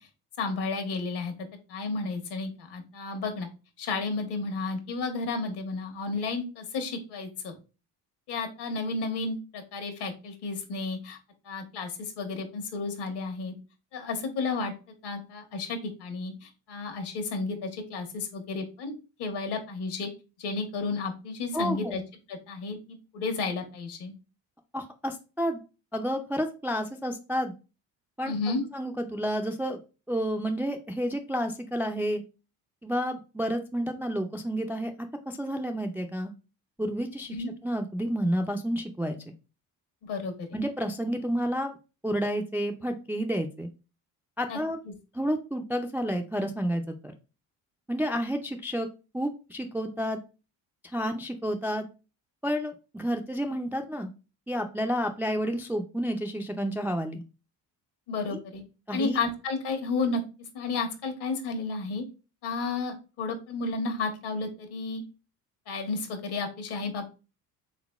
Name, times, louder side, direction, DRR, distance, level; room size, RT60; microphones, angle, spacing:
voice 1, 0.4-1.3 1.7-3.5 3.8-7.5 8.3-11.2 11.4-13.5 13.9-14.7 15.0-18.9 19.2-20.1 20.4-22.0 22.3-24.1 28.3-28.6 37.3-37.5 40.0-40.5 44.5-44.6 58.1-58.6 58.9-60.2 60.5-62.0 62.4-65.0 65.7-67.1, left 3 dB, 65° left, 5 dB, 1.2 m, -32 dB
voice 2, 21.5-22.0 24.7-25.6 25.9-27.5 28.2-28.4 28.7-29.8 30.1-32.2 32.8-34.9 35.3-36.3 36.8-39.2 40.5-41.8 42.0-43.7 44.4-44.8 45.1-47.1 47.9-48.9 49.1-50.2 50.8-51.9 52.4-54.1 54.5-57.2 58.3-58.4 58.9-59.2, equal, 5° right, 4 dB, 0.3 m, -30 dB
3.9 x 3.6 x 2.3 m, 0.32 s
supercardioid pair, 70°, 43 cm